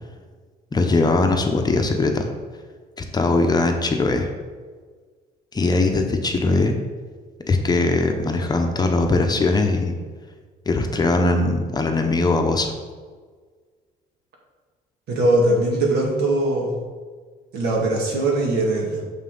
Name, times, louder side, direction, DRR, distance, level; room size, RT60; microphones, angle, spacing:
voice 1, 0.7-2.3 3.0-4.3 5.5-6.7 7.5-9.9 10.7-12.7, left 3 dB, 25° left, 4 dB, 0.8 m, -20 dB
voice 2, 15.1-16.8 17.5-19.0, right 2 dB, 80° right, -1 dB, 1.9 m, -21 dB
6.4 x 5.6 x 3.9 m, 1.5 s
cardioid pair, 110°, 17 cm